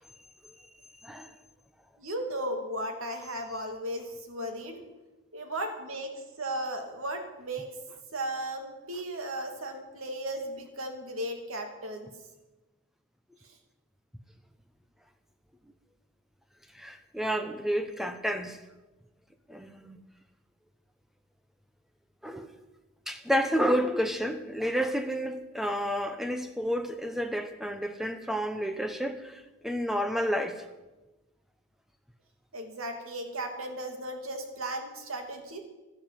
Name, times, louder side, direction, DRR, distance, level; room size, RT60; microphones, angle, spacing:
voice 1, 1.0-1.3 16.7-18.6 19.5-20.0 22.2-22.5 23.1-30.6, equal, ahead, 0.9 m, -30 dB
voice 2, 2.0-4.8 5.3-7.7 8.1-12.1 32.5-35.6, right 1 dB, 80° right, 2.5 m, -36 dB
12.5 x 12.0 x 7.6 m
head